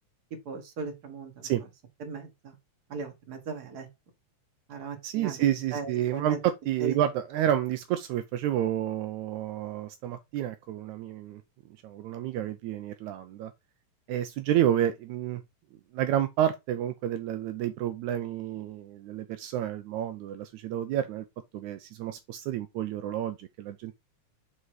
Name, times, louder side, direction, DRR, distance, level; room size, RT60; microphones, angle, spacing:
voice 1, 0.5-1.5 2.0-2.5 2.9-3.9 4.7-6.4 6.8-7.1, right 4 dB, 35° right, 2.0 m, -38 dB
voice 2, 5.0-11.4 11.8-13.5 14.1-15.4 15.9-21.3 21.5-23.9, right 11 dB, 80° right, 1.9 m, -30 dB
6.2 x 4.2 x 4.7 m
omnidirectional pair, 3.5 m